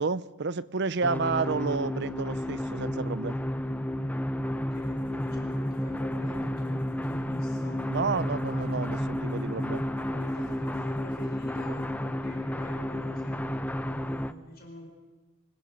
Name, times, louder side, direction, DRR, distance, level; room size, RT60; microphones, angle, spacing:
voice 1, 0.0-3.4 7.9-9.8, right 4 dB, 55° right, 17 dB, 0.6 m, -30 dB
sound 1, 1.0-14.3, left 1 dB, 5° left, 0.5 m, -31 dB
voice 2, 4.4-7.9 8.2-9.0 9.5-14.9, equal, 45° left, 2 dB, 5.0 m, -47 dB
sound 2, 4.6-11.9, equal, 25° right, 6.6 m, -57 dB
24.5 x 20.5 x 5.3 m, 1.2 s
head